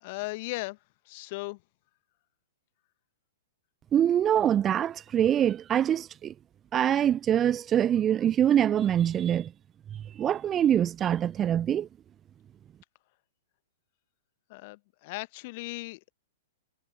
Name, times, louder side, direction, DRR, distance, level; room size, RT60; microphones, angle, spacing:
voice 1, 0.0-0.8 1.1-1.6 14.5-16.1, left 24 dB, 45° left, 1.1 m, -37 dB
voice 2, 3.9-6.3 6.7-9.5 10.2-11.9, right 10 dB, 20° right, 0.5 m, -24 dB
figure-of-eight pair, 105°, 0 cm